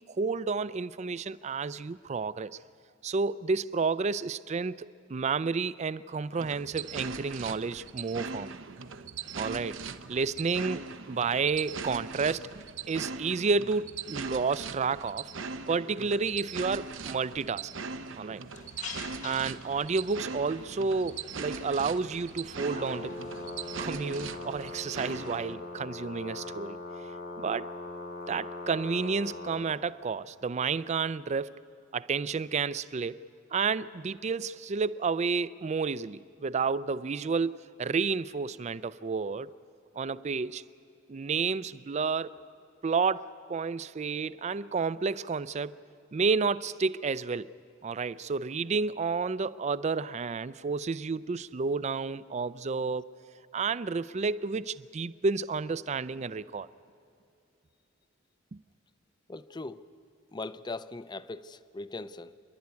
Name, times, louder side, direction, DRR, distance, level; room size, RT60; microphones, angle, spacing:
voice 1, 0.1-2.6 3.0-8.6 9.4-9.8 10.1-15.3 15.7-17.7 18.2-18.4 19.2-23.2 23.8-26.8 27.4-27.7 28.3-31.6 31.9-33.2 33.5-39.5 40.0-40.6 41.1-42.3 42.8-45.8 46.1-47.5 47.8-53.0 53.5-56.7 58.5-58.6, right 4 dB, 35° right, 0.4 m, -31 dB
sound 1, 6.4-25.5, right 5 dB, 75° right, 0.8 m, -40 dB
sound 2, 18.5-23.8, left 6 dB, 40° left, 1.2 m, -48 dB
Brass instrument, 22.5-29.7, left 2 dB, 65° left, 2.7 m, -40 dB
voice 2, 59.3-59.9 60.3-62.4, left 3 dB, 20° left, 0.5 m, -40 dB
27.0 x 11.5 x 9.6 m
head